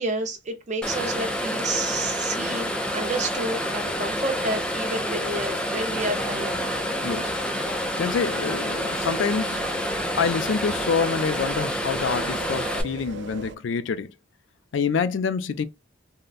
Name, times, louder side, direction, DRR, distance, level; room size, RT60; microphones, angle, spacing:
voice 1, 0.0-6.6, right 2 dB, 40° right, 0.8 m, -30 dB
sound 1, 0.8-12.8, equal, 5° left, 0.4 m, -28 dB
sound 2, 5.9-13.6, right 4 dB, 65° right, 0.4 m, -41 dB
voice 2, 7.0-7.3 8.0-9.7 10.2-14.1 14.7-15.7, left 5 dB, 75° left, 0.4 m, -26 dB
3.7 x 2.1 x 2.3 m
head